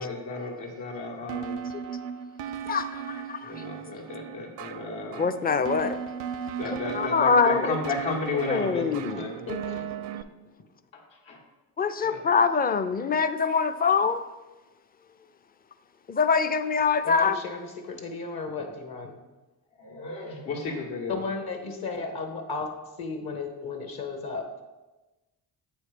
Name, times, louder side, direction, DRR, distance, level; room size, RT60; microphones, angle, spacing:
voice 1, 0.0-1.6 3.4-5.2 6.6-9.4 11.3-11.4 12.0-12.2 19.8-21.2 21.9-22.1, left 3 dB, 75° left, -1 dB, 1.7 m, -33 dB
sound 1, 1.3-10.2, right 8 dB, 75° right, 0.6 m, -36 dB
voice 2, 2.7-3.5 5.2-6.0 6.6-7.7 8.5-9.3 11.8-14.2 16.1-17.4, left 5 dB, 20° left, 11 dB, 0.4 m, -24 dB
voice 3, 9.2-9.8 17.0-19.1 21.1-24.6, left 4 dB, 50° left, 4 dB, 1.2 m, -35 dB
8.2 x 3.2 x 5.0 m, 1.1 s
supercardioid pair, 60°, 45 cm